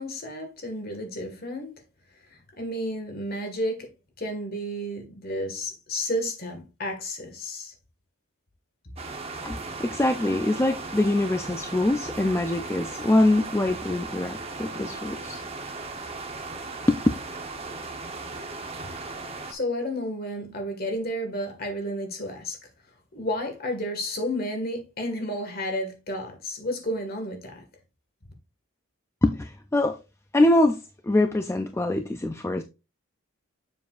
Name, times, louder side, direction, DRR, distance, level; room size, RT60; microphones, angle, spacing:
voice 1, 0.0-1.7 2.2-3.9 4.2-7.7 19.5-22.7 23.1-27.6, equal, 45° left, 1.8 m, -32 dB
sound 1, 9.0-19.5, right 3 dB, 25° right, 0.9 m, -37 dB
voice 2, 9.4-15.4 16.9-17.0 29.2-30.0 30.3-32.6, left 1 dB, 10° left, 0.3 m, -24 dB
7.1 x 6.5 x 2.5 m
head